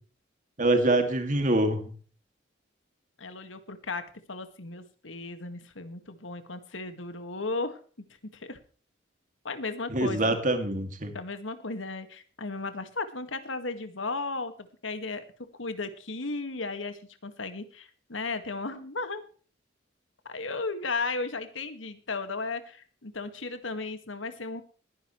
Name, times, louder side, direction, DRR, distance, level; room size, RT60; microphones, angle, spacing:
voice 1, 0.6-1.9 9.9-11.1, right 2 dB, 40° right, 6 dB, 2.5 m, -25 dB
voice 2, 3.2-7.8 8.3-8.6 9.4-10.4 11.1-15.2 15.5-19.2 20.3-24.6, left 3 dB, 85° left, 9 dB, 2.0 m, -35 dB
21.0 x 10.5 x 3.2 m, 0.40 s
head